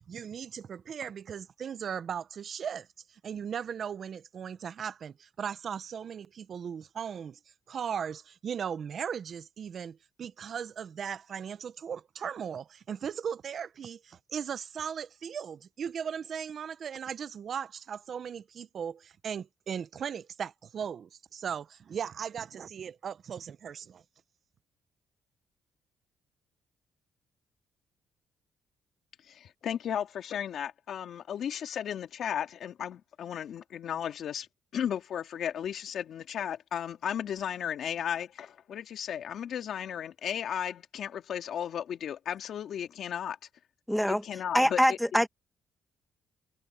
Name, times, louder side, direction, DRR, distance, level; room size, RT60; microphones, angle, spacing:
voice 1, 0.0-7.4 7.7-24.0, right 7 dB, 55° right, 0.8 m, -37 dB
voice 2, 29.2-34.5 34.7-43.4 44.1-45.0, left 9 dB, 65° left, 2.2 m, -35 dB
voice 3, 43.9-44.2 44.5-45.3, equal, ahead, 1.5 m, -24 dB
cardioid pair, 90°, 0 cm